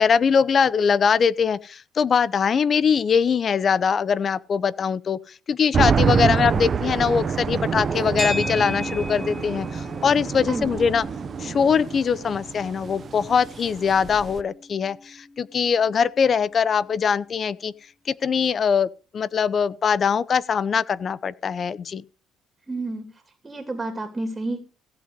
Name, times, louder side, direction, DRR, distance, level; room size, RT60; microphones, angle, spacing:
voice 1, 0.0-11.0 11.4-17.7 18.1-22.0, left 6 dB, 40° left, 0.7 m, -22 dB
sound 1, 5.7-14.4, right 6 dB, 40° right, 0.8 m, -26 dB
sound 2, 8.2-16.6, left 2 dB, 10° left, 2.0 m, -37 dB
voice 2, 10.5-10.8 22.7-23.1 23.4-24.6, right 2 dB, 20° right, 2.8 m, -30 dB
16.0 x 8.1 x 5.2 m
cardioid pair, 100°, 0 cm